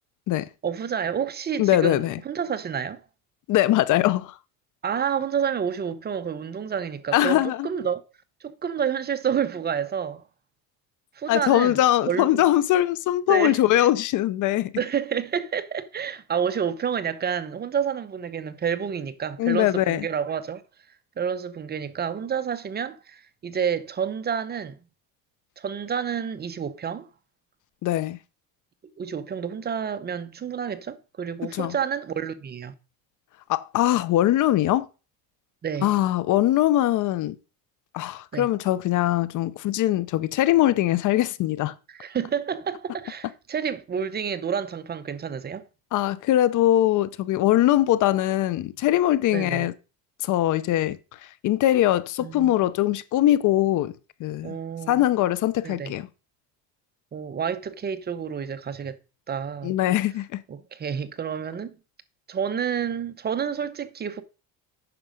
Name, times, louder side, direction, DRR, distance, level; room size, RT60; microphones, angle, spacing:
voice 1, 0.6-3.0 4.8-8.0 8.4-10.2 11.1-12.4 13.3-13.9 14.8-20.6 21.2-24.8 25.6-27.1 29.0-32.7 35.6-35.9 38.3-38.5 41.9-45.6 49.3-49.7 52.2-52.5 54.4-55.1 55.6-55.9 57.1-59.0 59.3-59.7 60.5-61.8 62.3-64.2, right 7 dB, 25° right, 0.8 m, -29 dB
voice 2, 1.6-2.2 3.5-4.4 7.1-7.7 11.3-14.7 19.4-20.1 27.8-28.2 31.5-31.7 33.5-34.9 35.8-37.4 37.9-41.7 45.9-49.7 50.2-51.0 51.4-53.9 54.2-54.5 54.9-56.1 59.6-60.4, left 13 dB, 55° left, 0.7 m, -22 dB
9.5 x 6.0 x 5.1 m
cardioid pair, 135°, 36 cm